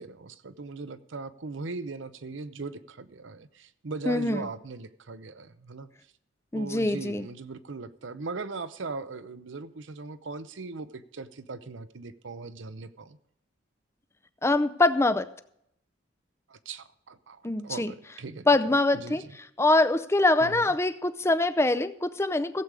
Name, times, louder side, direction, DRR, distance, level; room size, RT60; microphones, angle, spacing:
voice 1, 0.0-5.9 6.5-13.2 16.5-18.5 18.9-19.2 20.4-20.7, right 3 dB, 80° right, 14 dB, 0.7 m, -39 dB
voice 2, 4.1-4.5 6.5-7.3 14.4-15.3 17.4-17.9 18.5-22.6, left 2 dB, 15° left, 11 dB, 0.5 m, -24 dB
16.0 x 8.1 x 4.9 m, 0.74 s
head